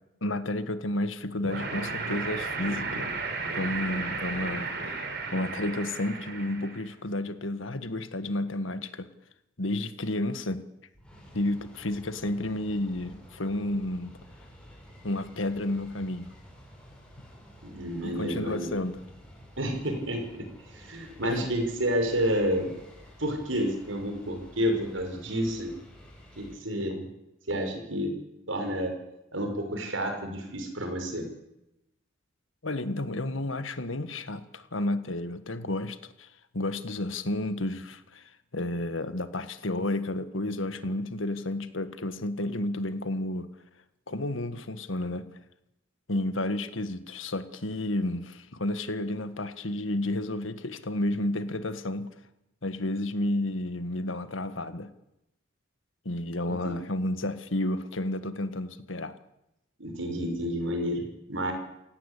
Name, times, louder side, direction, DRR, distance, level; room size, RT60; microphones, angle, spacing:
voice 1, 0.2-3.1 3.6-5.0 5.3-9.1 9.6-10.6 11.3-14.2 15.0-16.3 18.0-19.0 21.2-21.3 32.6-36.3 36.5-43.5 44.1-45.3 46.1-52.2 52.6-54.9 56.1-59.1, left 1 dB, 90° left, 1.7 m, -31 dB
sound 1, 1.4-6.9, right 4 dB, 55° right, 5.1 m, -34 dB
sound 2, 10.9-26.5, equal, 5° left, 7.2 m, -51 dB
voice 2, 17.6-18.7 19.6-20.4 20.7-22.8 23.2-25.7 26.4-27.1 27.5-28.1 28.5-28.9 29.3-31.3 56.5-56.8 59.8-61.5, equal, 85° right, 6.2 m, -30 dB
28.5 x 17.0 x 8.5 m
head